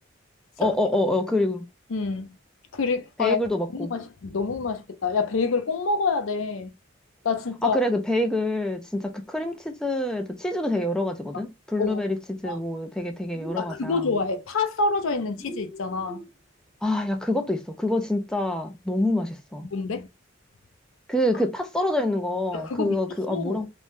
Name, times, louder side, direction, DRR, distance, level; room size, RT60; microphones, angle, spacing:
voice 1, 0.6-1.6 3.2-3.9 7.6-12.2 12.4-14.0 16.8-19.7 21.1-23.7, left 1 dB, 5° left, 0.4 m, -26 dB
voice 2, 1.9-2.4 2.7-3.4 3.7-6.7 7.2-7.8 11.8-12.0 12.4-12.6 13.6-16.2 19.7-20.1 22.5-23.0 23.3-23.6, left 4 dB, 80° left, 0.6 m, -27 dB
sound 1, 13.3-14.3 15.4-16.3, right 1 dB, 25° left, 0.8 m, -40 dB
3.2 x 2.1 x 2.6 m
head